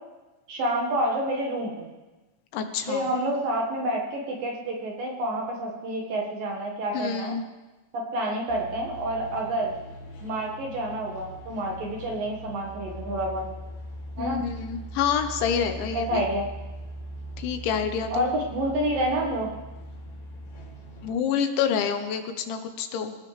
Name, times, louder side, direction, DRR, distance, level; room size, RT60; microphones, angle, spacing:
voice 1, 0.5-1.9 2.9-7.4 7.9-9.7 10.2-13.5 14.2-14.4 15.9-16.5 18.1-19.5, right 1 dB, 55° right, -1 dB, 3.0 m, -28 dB
voice 2, 2.5-3.1 6.9-7.4 14.2-16.2 17.4-18.2 21.0-23.2, left 7 dB, 80° left, 7 dB, 3.4 m, -27 dB
sound 1, 8.5-21.1, right 1 dB, 50° left, 4.1 m, -40 dB
25.5 x 16.0 x 3.4 m, 1.1 s
omnidirectional pair, 5.4 m